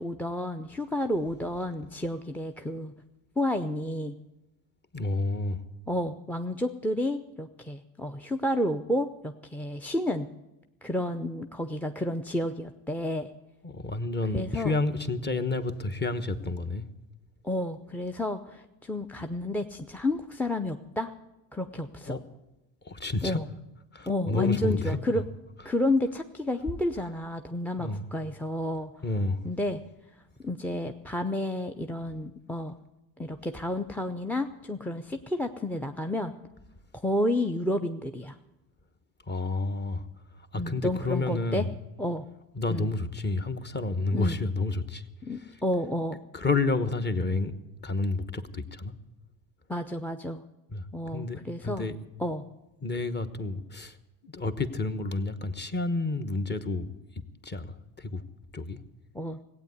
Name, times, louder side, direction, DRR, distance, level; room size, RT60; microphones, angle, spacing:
voice 1, 0.0-2.9 3.4-4.2 5.9-10.3 10.8-13.3 14.3-14.7 17.4-21.1 21.5-22.2 23.2-23.5 24.1-25.2 25.6-28.9 29.4-29.8 30.4-32.7 33.2-36.3 37.0-38.4 40.5-41.6 42.0-42.3 42.7-42.9 44.1-44.4 45.2-46.2 49.7-50.4 50.9-51.9 52.2-52.4 59.1-59.4, left 1 dB, 5° left, 0.5 m, -30 dB
voice 2, 4.9-5.6 13.6-16.9 22.0-22.2 22.8-23.4 23.9-25.2 27.8-28.0 29.0-29.5 39.3-40.1 40.4-41.7 42.5-45.6 46.3-47.6 47.8-48.9 50.7-52.0 52.8-54.0 54.2-58.2 58.5-58.8, left 2 dB, 25° left, 1.1 m, -30 dB
16.0 x 8.6 x 9.5 m
supercardioid pair, 95°, 42 cm